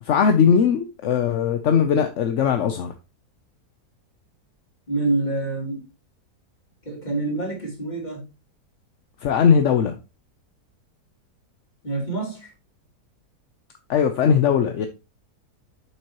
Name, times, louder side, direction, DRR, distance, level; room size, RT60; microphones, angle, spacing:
voice 1, 0.0-2.9 9.2-10.0 13.9-14.9, left 7 dB, 55° left, 0.9 m, -19 dB
voice 2, 4.9-5.8 6.8-8.2 11.8-12.5, right 2 dB, 25° left, 3.0 m, -26 dB
7.8 x 6.3 x 2.9 m
omnidirectional pair, 1.7 m